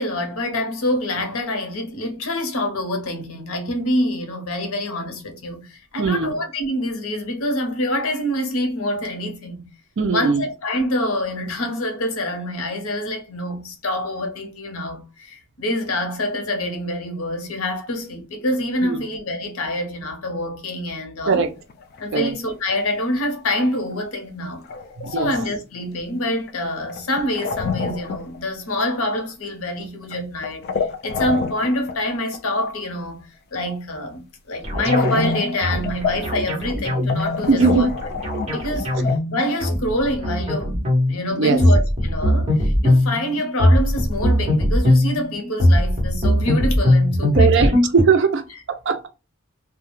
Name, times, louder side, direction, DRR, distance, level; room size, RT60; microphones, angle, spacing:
voice 1, 0.0-9.7 10.1-21.4 22.0-24.7 25.1-30.7 31.0-37.9 38.3-38.9 39.3-47.7, left 1 dB, 85° left, 0.7 m, -26 dB
voice 2, 6.0-6.3 10.0-10.4 18.8-19.0 21.3-21.5 22.1-22.3 25.0-25.3 37.5-37.9 41.3-41.6 47.3-49.1, right 5 dB, 55° right, 0.4 m, -19 dB
sound 1, 21.6-22.1 22.4-22.7 23.2-23.3 23.5-23.6 24.6-25.5 26.5-28.5 28.8-29.3 30.0-32.0 32.3-32.7 34.9-36.3 36.8-36.9 37.1-39.2, left 5 dB, 50° left, 0.3 m, -28 dB
sound 2, 34.6-48.0, left 1 dB, 30° right, 1.0 m, -20 dB
2.3 x 2.1 x 3.0 m
head